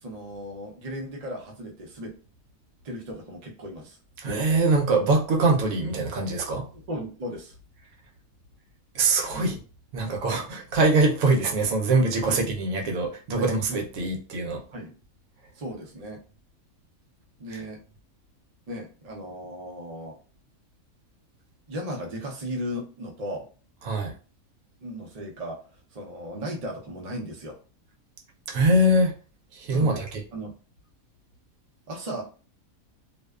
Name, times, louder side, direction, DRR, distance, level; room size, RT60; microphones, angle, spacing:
voice 1, 0.0-2.1 2.8-4.0 6.7-7.5 9.3-9.6 12.3-12.5 13.4-13.5 14.7-14.9 15.5-16.2 17.4-17.8 18.7-20.2 21.7-23.4 24.8-25.6 25.9-27.6 29.7-30.0 30.3-30.5 31.9-32.2, equal, 55° right, 0.4 m, -36 dB
voice 2, 4.2-6.7 8.9-9.6 9.9-14.6 23.8-24.1 28.5-29.1 29.6-30.0, right 2 dB, 75° right, 1.0 m, -23 dB
2.6 x 2.2 x 2.2 m
omnidirectional pair, 1.5 m